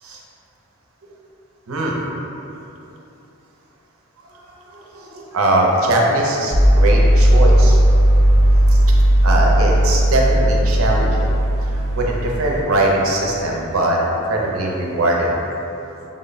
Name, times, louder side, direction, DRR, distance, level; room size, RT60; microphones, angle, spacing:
voice 1, 1.7-2.1 2.5-2.6 4.3-8.8 9.2-11.4 11.7-16.0, right 1 dB, 75° right, -2 dB, 0.5 m, -21 dB
sound 1, 6.5-12.6, equal, 30° left, 0.7 m, -15 dB
3.6 x 2.1 x 3.8 m, 2.9 s
head